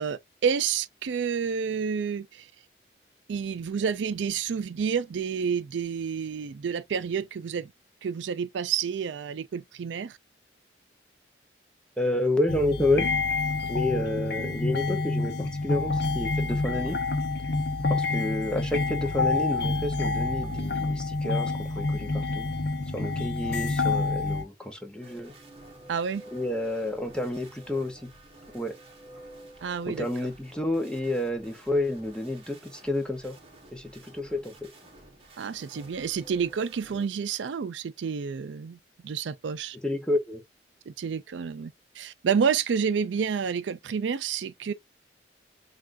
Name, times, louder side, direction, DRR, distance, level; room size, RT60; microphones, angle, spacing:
voice 1, 0.0-2.5 3.3-7.7 8.0-10.2 25.9-26.2 29.6-30.1 35.4-39.8 40.9-44.7, right 6 dB, 85° right, 0.4 m, -29 dB
voice 2, 12.0-13.1 13.7-17.0 17.9-22.5 22.9-25.3 26.3-28.1 28.5-28.7 29.9-33.4 33.7-34.7 39.8-40.4, left 1 dB, 5° left, 0.7 m, -30 dB
sound 1, 12.5-24.4, left 3 dB, 60° left, 0.7 m, -28 dB
sound 2, 25.0-37.1, right 1 dB, 30° right, 1.2 m, -50 dB
5.9 x 2.4 x 2.5 m
head